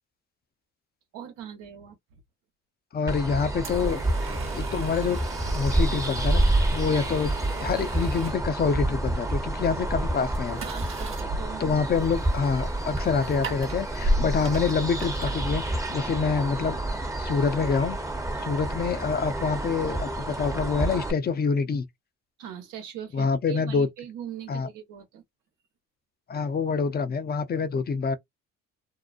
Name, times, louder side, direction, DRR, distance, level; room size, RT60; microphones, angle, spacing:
voice 1, 1.1-2.2 10.7-11.8 22.4-25.2, right 9 dB, 80° right, 1.0 m, -41 dB
voice 2, 2.9-4.0 4.5-5.2 5.5-10.6 11.6-16.8 17.2-18.0 18.4-21.9 23.1-23.9 24.5-24.7 26.3-28.2, left 5 dB, 30° left, 0.5 m, -26 dB
sound 1, 3.1-21.1, right 1 dB, 10° right, 0.7 m, -29 dB
sound 2, 3.6-16.1, right 1 dB, 40° right, 1.0 m, -35 dB
2.5 x 2.0 x 2.5 m
supercardioid pair, 80°, 31 cm